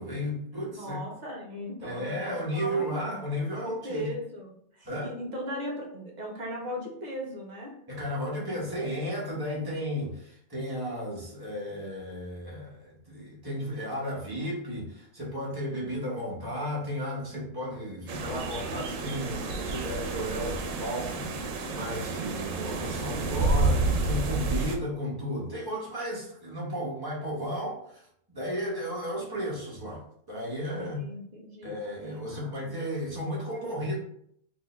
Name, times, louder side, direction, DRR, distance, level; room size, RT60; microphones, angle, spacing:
voice 1, 0.0-1.0 1.8-4.1 4.8-5.1 7.9-31.0 31.6-34.0, equal, 20° right, -5 dB, 1.0 m, -34 dB
voice 2, 0.7-3.2 3.6-7.8 30.9-31.8 32.3-32.8, equal, 45° right, -1 dB, 0.7 m, -38 dB
sound 1, 18.1-24.8, right 3 dB, 85° right, 1.0 m, -30 dB
3.3 x 2.6 x 3.1 m, 0.69 s
omnidirectional pair, 1.3 m